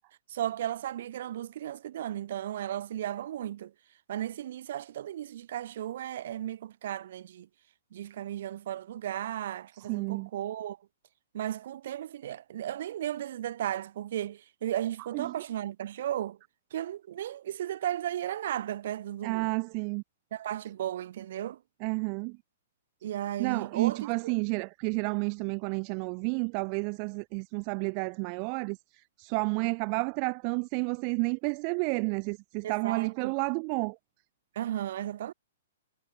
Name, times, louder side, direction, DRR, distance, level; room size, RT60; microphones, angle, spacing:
voice 1, 0.3-3.7 4.1-7.5 7.9-10.8 11.3-16.4 16.7-19.5 20.3-21.6 23.0-24.3 29.6-29.7 32.6-33.3 34.6-35.3, right 11 dB, 50° right, 4.0 m, -35 dB
voice 2, 9.9-10.3 15.1-15.3 19.2-20.0 21.8-22.4 23.4-34.0, right 40 dB or more, 25° right, 2.0 m, -31 dB
hypercardioid pair, 175°, 0 cm